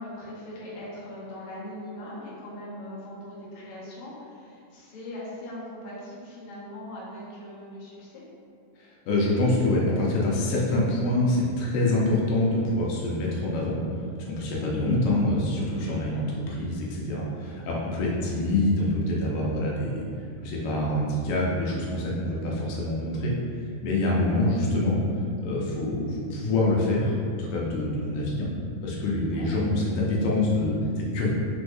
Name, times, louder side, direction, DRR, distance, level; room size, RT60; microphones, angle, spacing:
voice 1, 0.0-8.2 18.2-18.4 29.2-29.5, left 1 dB, 60° left, -7 dB, 1.5 m, -40 dB
voice 2, 9.1-13.7 14.3-20.0 20.4-23.3 23.8-25.0 25.4-28.5 28.8-31.3, left 1 dB, 80° left, -4 dB, 2.3 m, -25 dB
4.7 x 4.3 x 2.6 m, 2.4 s
omnidirectional pair, 3.8 m